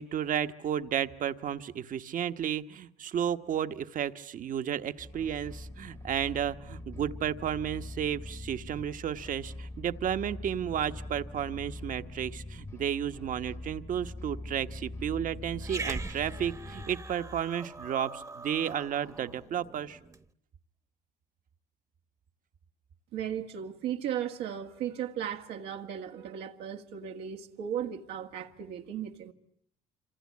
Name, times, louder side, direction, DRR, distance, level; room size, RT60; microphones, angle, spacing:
voice 1, 0.0-20.0, right 9 dB, 50° right, 1.2 m, -32 dB
sound 1, 5.0-17.4, left 2 dB, 15° left, 1.1 m, -43 dB
Growling, 15.6-20.2, right 3 dB, 20° right, 1.1 m, -42 dB
voice 2, 23.1-29.3, right 9 dB, 85° right, 1.8 m, -36 dB
27.0 x 26.0 x 8.5 m
cardioid pair, 110°, 17 cm